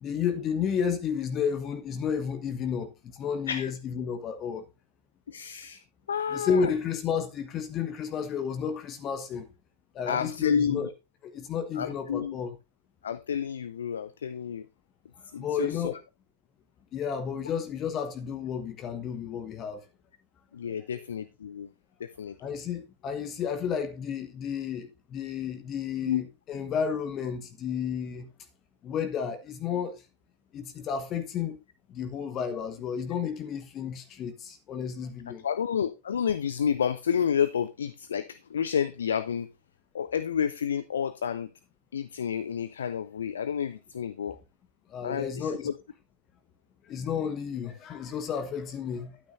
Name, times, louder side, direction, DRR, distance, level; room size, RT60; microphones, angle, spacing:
voice 1, 0.0-4.7 6.3-9.5 9.9-10.9 11.2-12.6 15.1-16.0 16.9-19.9 20.7-20.8 22.4-28.3 28.8-30.0 30.5-31.6 31.9-35.4 44.9-45.7 46.8-49.2, left 7 dB, 30° left, 1.0 m, -32 dB
voice 2, 5.3-5.8 6.1-6.7 10.1-10.9 11.8-12.4 13.0-14.7 15.3-15.9 20.5-21.7 22.0-22.4 26.0-26.2 35.4-39.5 39.9-41.5 41.9-44.4 45.0-45.7, left 7 dB, 65° left, 0.5 m, -30 dB
11.5 x 9.3 x 2.6 m
figure-of-eight pair, 90°, 0 cm